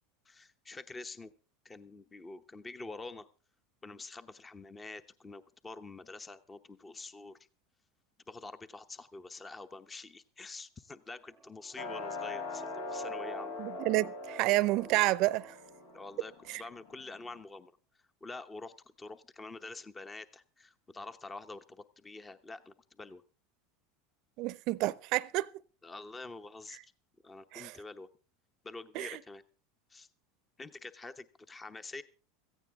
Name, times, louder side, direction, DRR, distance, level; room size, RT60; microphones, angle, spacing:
voice 1, 0.2-1.3 1.6-3.3 3.8-7.4 8.3-13.6 15.9-23.2 25.8-26.9 27.2-28.1 28.6-29.4 29.9-30.1 30.6-32.0, left 3 dB, 20° left, 0.9 m, -47 dB
sound 1, 11.2-16.0 16.4-16.5, right 4 dB, 20° right, 0.7 m, -50 dB
sound 2, 11.8-17.4, left 4 dB, 75° left, 1.6 m, -42 dB
voice 2, 13.6-15.6 16.5-16.6 24.4-25.5 27.5-27.8 28.9-29.2, right 19 dB, 55° right, 0.6 m, -29 dB
16.5 x 15.0 x 3.6 m
hypercardioid pair, 105°, 0 cm